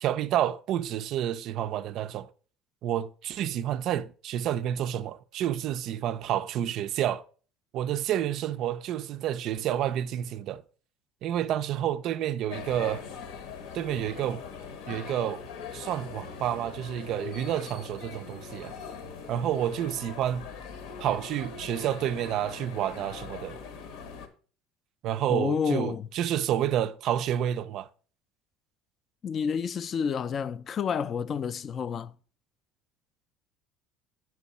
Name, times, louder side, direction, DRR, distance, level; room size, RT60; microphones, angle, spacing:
voice 1, 0.0-2.3 2.8-7.2 7.7-10.6 11.2-13.1 13.7-14.4 14.9-15.4 15.7-18.8 19.3-20.5 21.0-23.6 25.0-27.9, right 11 dB, 50° right, 0.3 m, -29 dB
sound 1, 12.5-24.3, left 6 dB, 75° left, 1.0 m, -41 dB
voice 2, 25.3-26.1 29.2-32.1, left 6 dB, 30° left, 0.3 m, -29 dB
7.3 x 5.9 x 4.1 m
cardioid pair, 150°, 0 cm